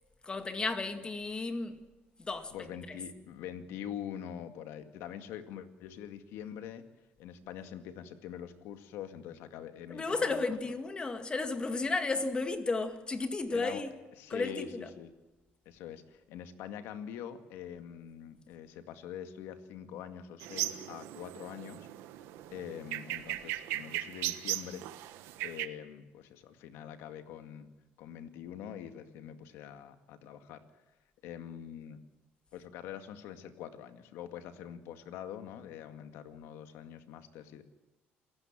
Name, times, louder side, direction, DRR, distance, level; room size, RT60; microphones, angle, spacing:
voice 1, 0.2-1.8 2.2-3.0 9.9-13.9 14.3-14.9, left 3 dB, 20° left, 2.0 m, -33 dB
voice 2, 2.5-6.8 7.2-10.4 13.5-13.8 14.2-15.1 15.7-21.9 22.5-24.9 25.4-27.7 28.0-30.6 31.2-32.0 32.5-37.6, left 9 dB, 85° left, 2.1 m, -44 dB
sound 1, 20.4-25.7, right 15 dB, 90° right, 1.3 m, -38 dB
27.5 x 15.5 x 7.5 m
cardioid pair, 125°, 4 cm